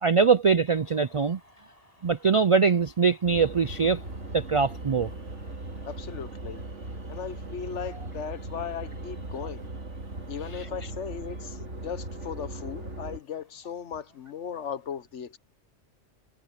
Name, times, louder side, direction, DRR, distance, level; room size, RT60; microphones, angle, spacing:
voice 1, 0.0-1.4 2.0-4.0 4.3-5.1, right 5 dB, 60° right, 0.3 m, -22 dB
sound 1, 0.7-14.9, left 1 dB, 30° left, 8.2 m, -61 dB
sound 2, 3.3-13.2, right 2 dB, 75° right, 2.7 m, -38 dB
voice 2, 5.9-6.6 7.1-9.6 10.3-15.4, left 7 dB, 75° left, 1.3 m, -37 dB
omnidirectional pair, 1.2 m